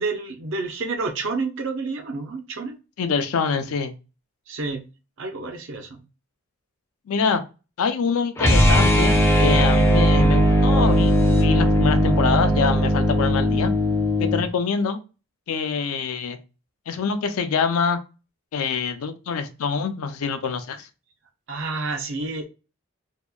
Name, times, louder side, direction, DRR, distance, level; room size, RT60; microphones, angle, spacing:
voice 1, 0.0-2.8 4.5-4.8 5.2-6.0 21.5-22.5, right 3 dB, 60° right, 5 dB, 0.5 m, -29 dB
voice 2, 3.0-3.9 7.1-7.4 7.8-13.7 14.2-15.0 15.5-16.4 16.9-18.0 18.5-20.9, left 5 dB, 85° left, 9 dB, 0.4 m, -25 dB
sound 1, 8.4-14.5, equal, 10° left, 0.4 m, -18 dB
2.8 x 2.1 x 2.3 m, 0.31 s
head